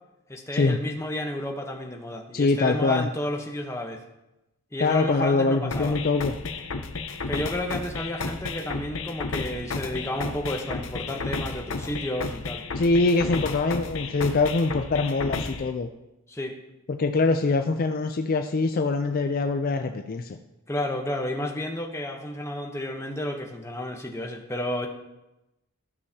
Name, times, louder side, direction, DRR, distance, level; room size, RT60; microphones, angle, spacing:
voice 1, 0.3-4.0 4.7-6.0 7.3-12.6 16.3-16.6 20.7-24.9, left 1 dB, 15° left, 2 dB, 0.9 m, -31 dB
voice 2, 2.3-3.1 4.8-6.3 12.8-15.9 16.9-20.4, left 3 dB, 45° left, 6 dB, 0.4 m, -23 dB
sound 1, 5.7-15.7, left 4 dB, 70° left, 0.7 m, -33 dB
14.5 x 6.5 x 2.8 m, 0.94 s
head